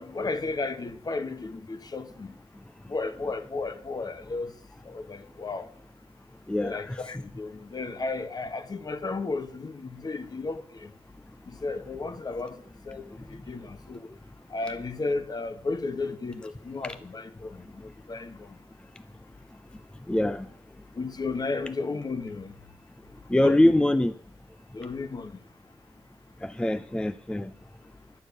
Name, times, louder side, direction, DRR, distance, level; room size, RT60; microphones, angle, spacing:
voice 1, 0.0-2.3 2.9-4.5 4.8-5.7 6.6-10.9 11.5-14.0 14.5-18.5 20.9-22.5 23.4-23.6 24.7-25.3, left 3 dB, 40° left, 1.2 m, -34 dB
voice 2, 6.5-7.0 16.8-17.0 20.1-20.5 23.3-24.1 26.4-27.5, left 1 dB, 10° left, 0.4 m, -24 dB
11.0 x 6.3 x 8.2 m
cardioid pair, 85°, 10 cm